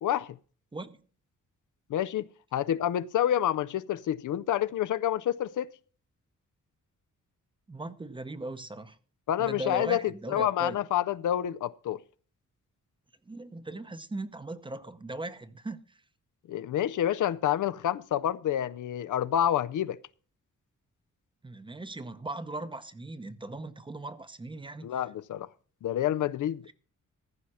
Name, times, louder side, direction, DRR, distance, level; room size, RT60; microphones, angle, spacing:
voice 1, 0.0-0.4 1.9-5.7 9.3-10.0 10.3-12.0 16.5-20.0 24.8-25.5 25.8-26.7, left 11 dB, 75° left, 0.5 m, -28 dB
voice 2, 7.7-9.0 9.4-10.8 13.3-15.8 21.4-24.9, right 2 dB, 15° right, 0.7 m, -38 dB
14.5 x 5.6 x 6.2 m
wide cardioid pair, 130°, 31 cm